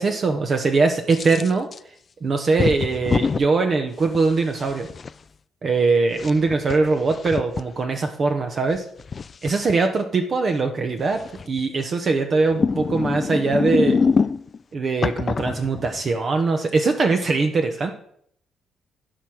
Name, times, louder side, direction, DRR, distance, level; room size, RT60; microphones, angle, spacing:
voice 1, 0.0-1.7 2.2-4.9 5.6-8.9 9.4-11.2 11.5-14.0 14.7-17.9, right 3 dB, 45° right, 5 dB, 1.0 m, -21 dB
sound 1, 1.1-1.8 2.6-3.4 4.1-5.1 6.1-7.6 8.7-9.7 11.2-11.6 12.4-14.6 15.0-16.1, left 5 dB, 40° left, 0.4 m, -25 dB
14.0 x 4.9 x 6.2 m, 0.67 s
cardioid pair, 90°, 0 cm